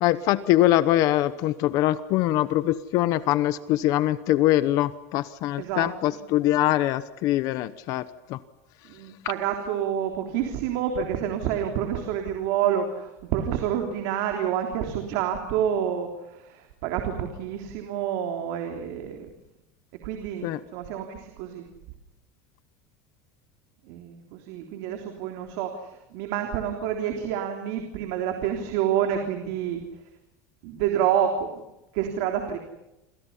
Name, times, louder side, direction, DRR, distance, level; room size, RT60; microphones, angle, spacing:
voice 1, 0.0-8.0 8.3-8.4 20.4-20.6, left 14 dB, 40° left, 15 dB, 0.9 m, -23 dB
voice 2, 5.6-6.2 8.9-19.3 20.0-21.7 23.9-29.8 30.6-31.5 31.9-32.6, right 9 dB, 55° right, 4 dB, 3.5 m, -28 dB
28.5 x 27.0 x 5.7 m, 0.93 s
cardioid pair, 180°, 9 cm